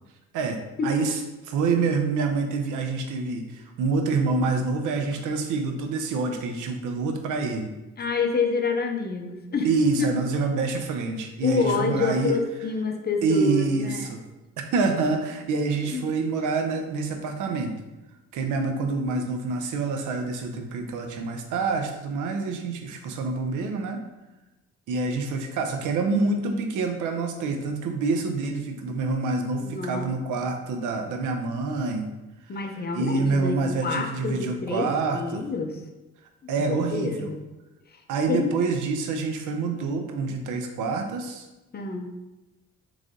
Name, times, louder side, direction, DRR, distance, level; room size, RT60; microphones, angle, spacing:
voice 1, 0.3-1.2 1.5-7.7 9.6-12.4 13.2-14.2 14.7-17.8 18.3-24.0 24.9-32.1 32.9-35.4 36.5-37.3 38.1-41.5, right 4 dB, 85° right, 5 dB, 0.7 m, -27 dB
voice 2, 8.0-9.7 10.0-10.1 11.4-14.1 15.9-16.0 29.6-30.0 32.5-34.9 35.1-35.8 36.6-37.4 37.9-38.0 38.3-38.5 41.7-42.2, left 4 dB, 30° left, 4 dB, 0.7 m, -27 dB
4.0 x 3.3 x 3.7 m, 1.0 s
cardioid pair, 90°, 30 cm